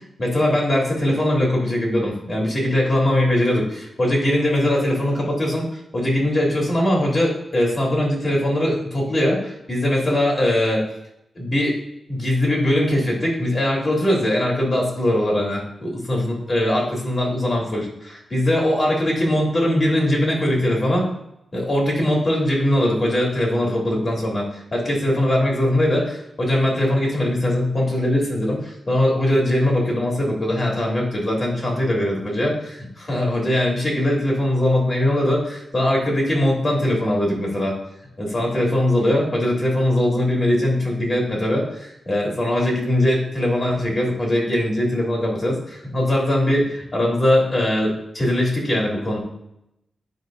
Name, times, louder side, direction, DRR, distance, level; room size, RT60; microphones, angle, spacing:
voice 1, 0.2-5.7 5.9-10.8 11.3-11.8 12.1-21.1 21.5-37.7 38.2-49.2, left 1 dB, 40° left, -2 dB, 2.9 m, -21 dB
10.5 x 5.2 x 2.5 m, 0.83 s
cardioid pair, 80°, 0 cm